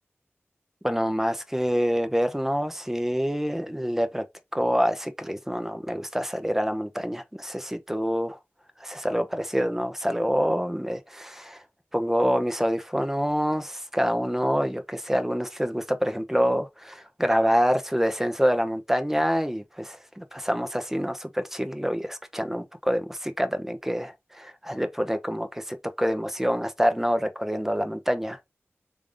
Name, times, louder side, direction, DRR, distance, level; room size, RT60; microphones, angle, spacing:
voice 1, 0.8-4.2 4.5-8.4 8.8-11.6 11.9-28.4, equal, 5° right, 0.7 m, -26 dB
3.4 x 2.5 x 3.3 m
cardioid pair, 40°, 5 cm